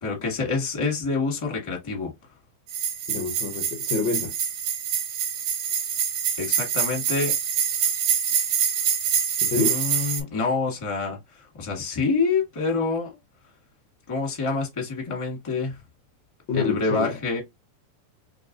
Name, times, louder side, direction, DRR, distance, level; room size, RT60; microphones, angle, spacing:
voice 1, 0.0-2.1 6.4-7.3 9.5-13.1 14.1-15.8 16.5-17.4, left 4 dB, 20° left, 0.8 m, -27 dB
sound 1, 2.7-10.2, right 8 dB, 65° right, 2.1 m, -25 dB
voice 2, 3.1-4.3 9.4-9.8 16.5-17.1, left 4 dB, 85° left, 0.9 m, -27 dB
4.5 x 3.6 x 2.7 m
omnidirectional pair, 3.6 m